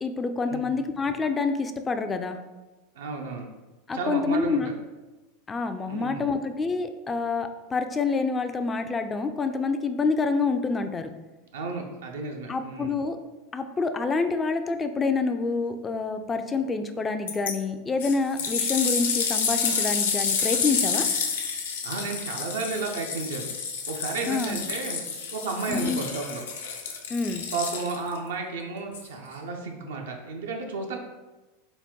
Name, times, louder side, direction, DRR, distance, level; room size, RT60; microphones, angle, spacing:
voice 1, 0.0-2.4 3.9-4.7 5.5-11.1 12.5-13.2 13.5-21.1 24.3-24.6 25.7-26.0 27.1-27.4, left 4 dB, 20° left, 8 dB, 0.3 m, -27 dB
voice 2, 3.0-3.5 3.9-4.7 5.9-6.3 11.5-13.0 21.8-23.5 23.9-25.0 25.3-26.4 27.5-31.0, right 4 dB, 75° right, 1 dB, 0.5 m, -33 dB
sound 1, 17.3-17.5 18.0-28.2 28.9-29.0, left 5 dB, 75° left, 0.5 m, -29 dB
3.9 x 2.2 x 3.6 m, 1.1 s
hypercardioid pair, 90°, 0 cm